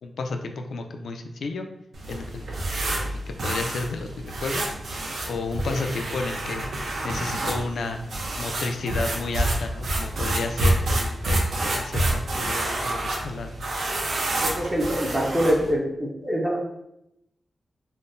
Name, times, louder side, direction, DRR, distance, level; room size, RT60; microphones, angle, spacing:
voice 1, 0.0-1.7 2.1-4.7 5.3-6.7 7.0-8.0 8.4-13.5 14.5-15.0, left 3 dB, 85° left, 5 dB, 0.3 m, -32 dB
sound 1, 1.9-15.7, right 1 dB, 85° right, 0.6 m, -28 dB
voice 2, 14.4-16.6, equal, 15° right, -3 dB, 0.4 m, -25 dB
3.7 x 2.1 x 2.5 m, 0.81 s
wide cardioid pair, 180°, 0 cm